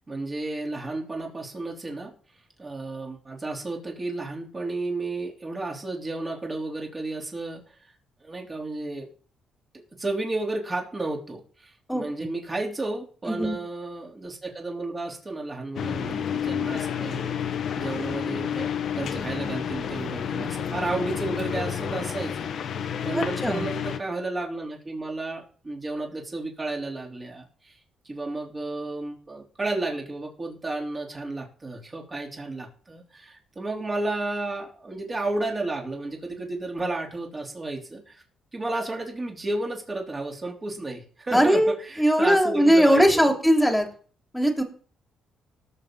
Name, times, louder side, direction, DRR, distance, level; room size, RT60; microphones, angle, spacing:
voice 1, 0.0-2.1 2.6-7.8 8.2-9.1 10.0-22.5 22.8-27.8 28.1-38.2 38.5-43.3, right 2 dB, 25° right, -1 dB, 3.7 m, -32 dB
voice 2, 13.3-13.6 23.1-23.7 41.3-43.9 44.3-44.6, equal, 5° left, 3 dB, 2.7 m, -20 dB
sound 1, 15.7-24.0, left 8 dB, 65° left, 1.3 m, -30 dB
18.5 x 7.2 x 4.0 m, 0.43 s
cardioid pair, 90°, 0 cm